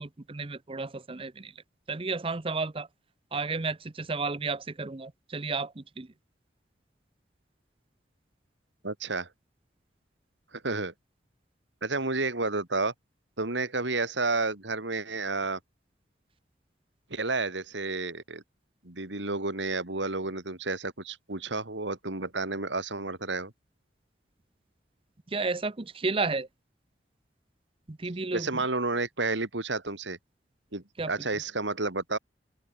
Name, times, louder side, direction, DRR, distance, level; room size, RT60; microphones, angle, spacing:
voice 1, 0.0-1.5 1.9-2.9 3.3-6.1 25.3-26.5 27.9-28.5 31.0-31.1, right 3 dB, 30° right, 0.7 m, -32 dB
voice 2, 8.8-9.3 10.5-10.9 11.8-12.9 13.4-15.6 17.1-18.4 18.8-23.5 28.3-30.2 30.7-32.2, right 3 dB, 85° right, 3.0 m, -31 dB
open air
head